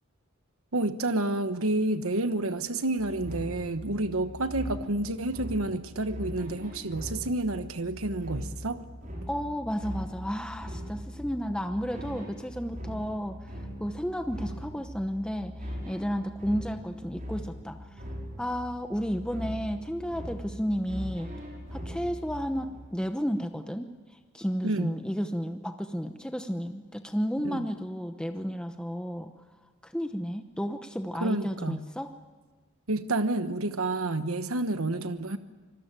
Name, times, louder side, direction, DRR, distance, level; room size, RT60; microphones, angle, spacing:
voice 1, 0.7-8.8 24.6-24.9 27.4-27.6 31.2-31.8 32.9-35.4, right 2 dB, 80° right, 10 dB, 1.2 m, -29 dB
sound 1, 3.0-22.8, equal, 40° right, 5.9 m, -40 dB
voice 2, 9.3-13.4 13.8-18.0 18.4-21.3 21.7-23.9 24.3-29.3 29.8-32.1, equal, 5° left, 6 dB, 0.9 m, -32 dB
26.5 x 20.5 x 9.0 m, 1.3 s
head